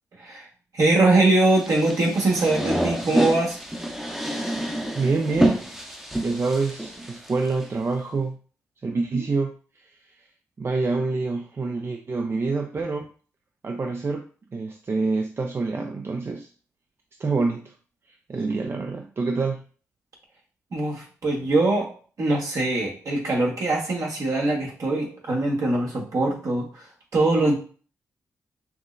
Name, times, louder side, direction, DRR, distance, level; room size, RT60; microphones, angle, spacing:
voice 1, 0.7-3.6 20.7-21.9 22.2-26.9 27.1-27.5, right 2 dB, 65° right, -2 dB, 1.5 m, -22 dB
sound 1, 1.5-7.6, right 1 dB, 5° right, 0.7 m, -28 dB
voice 2, 4.9-8.4 8.8-9.5 10.6-13.1 13.6-14.3 14.5-16.5 17.2-17.7 18.3-19.6, right 3 dB, 40° right, 3 dB, 0.5 m, -26 dB
5.8 x 2.1 x 2.6 m, 0.39 s
cardioid pair, 60°, 6 cm